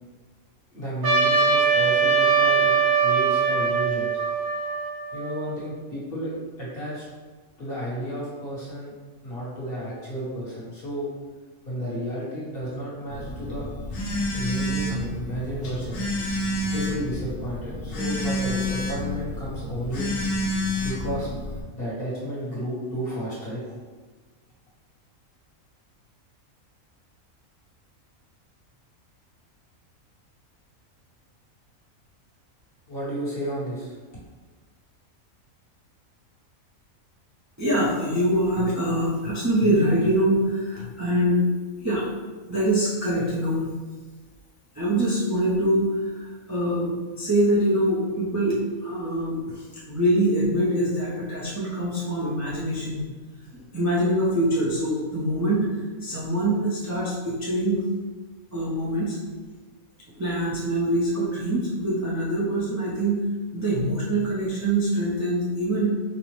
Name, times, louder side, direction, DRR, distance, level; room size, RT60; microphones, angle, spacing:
voice 1, 0.7-2.7 3.0-4.1 5.1-6.3 6.6-7.0 7.6-8.9 9.2-11.1 11.6-13.7 14.3-16.0 16.7-20.2 20.8-21.3 21.7-23.8 32.9-34.0, equal, 45° left, -7 dB, 1.3 m, -32 dB
Trumpet, 1.0-5.5, right 5 dB, 50° right, 1.0 m, -21 dB
Telephone, 13.1-21.6, left 1 dB, 90° left, 1.3 m, -29 dB
voice 2, 37.6-41.4 41.8-42.0 42.5-43.7 44.8-53.1 53.5-55.7 56.0-57.9 58.5-59.2 60.2-63.3 63.5-65.9, right 1 dB, 20° right, -7 dB, 0.4 m, -24 dB
5.4 x 2.1 x 3.1 m, 1.3 s
omnidirectional pair, 1.4 m